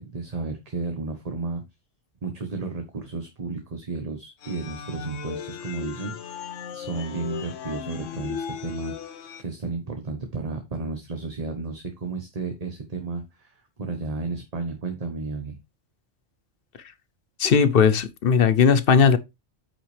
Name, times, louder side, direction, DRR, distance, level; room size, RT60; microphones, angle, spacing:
voice 1, 0.0-1.6 2.2-15.6, right 3 dB, 35° right, 1.1 m, -33 dB
sound 1, 4.4-9.4, left 7 dB, 85° left, 1.1 m, -36 dB
voice 2, 17.4-19.2, left 6 dB, 55° left, 0.8 m, -18 dB
8.8 x 5.6 x 3.3 m
omnidirectional pair, 1.2 m